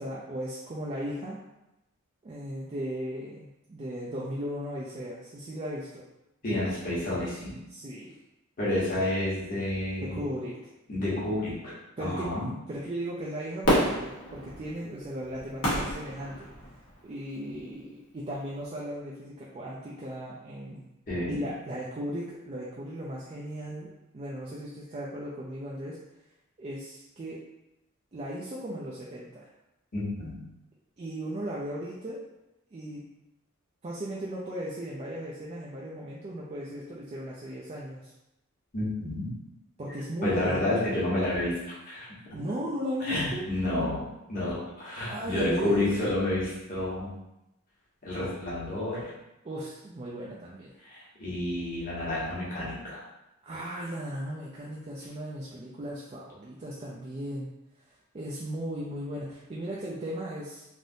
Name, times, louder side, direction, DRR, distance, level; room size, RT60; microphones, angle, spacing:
voice 1, 0.0-1.4 2.2-6.0 7.7-8.2 10.0-10.6 12.0-12.3 12.7-16.5 17.0-20.9 21.3-23.9 24.1-26.0 26.6-27.4 28.1-29.5 31.0-32.2 32.7-33.1 33.8-38.1 39.8-40.9 42.3-43.4 45.1-45.9 49.4-50.7 53.4-57.5 57.9-60.7, equal, 30° right, -5 dB, 0.3 m, -36 dB
voice 2, 6.4-7.5 8.6-10.2 10.9-12.5 21.1-21.4 29.9-30.4 38.7-39.3 40.2-42.1 43.0-47.1 48.0-49.1 50.8-53.0, left 1 dB, 40° left, -8 dB, 1.2 m, -30 dB
Fireworks, 13.6-17.0 17.5-17.6, equal, 85° left, 1.1 m, -29 dB
3.3 x 2.5 x 2.6 m, 0.93 s
head